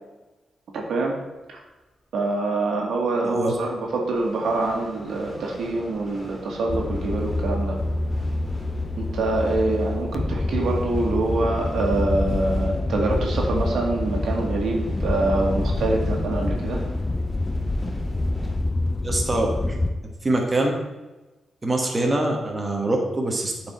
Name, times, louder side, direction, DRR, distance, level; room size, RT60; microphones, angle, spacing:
voice 1, 0.7-1.1 1.5-1.6 2.1-7.8 9.0-16.8, right 2 dB, 80° right, 0 dB, 1.6 m, -25 dB
sound 1, 2.7-18.6, equal, 5° right, 2.4 m, -44 dB
sound 2, 6.7-19.9, left 2 dB, 25° left, 0.6 m, -26 dB
voice 2, 19.0-19.8 20.2-20.7 21.6-23.7, right 2 dB, 25° right, 1 dB, 1.3 m, -24 dB
8.5 x 4.6 x 4.3 m, 1.1 s
cardioid pair, 85°, 0 cm